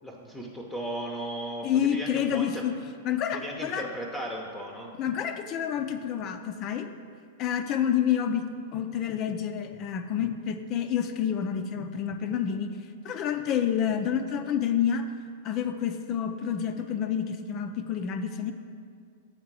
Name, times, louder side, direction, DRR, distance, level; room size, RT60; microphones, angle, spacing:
voice 1, 0.0-2.7 3.3-4.9, right 1 dB, 5° left, -1 dB, 0.7 m, -36 dB
voice 2, 1.6-2.7 3.1-3.9 5.0-6.9 7.4-12.8 13.0-15.0 15.4-18.5, left 8 dB, 40° left, 8 dB, 0.4 m, -28 dB
7.9 x 3.7 x 6.1 m, 2.2 s
figure-of-eight pair, 100°, 0 cm